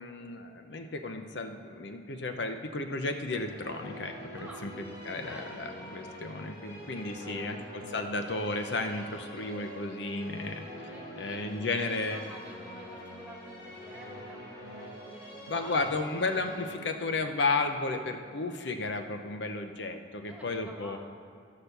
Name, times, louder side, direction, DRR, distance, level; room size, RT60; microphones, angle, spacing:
voice 1, 0.0-4.7 5.0-10.9 11.2-12.2 15.5-21.0, left 3 dB, 75° left, 6 dB, 0.8 m, -33 dB
sound 1, 3.1-19.2, equal, 55° left, 2.3 m, -45 dB
voice 2, 4.4-4.7 5.1-5.7 7.2-7.5 10.7-16.0 20.2-21.0, right 1 dB, 5° right, -1 dB, 1.5 m, -50 dB
11.5 x 6.6 x 6.7 m, 2.4 s
head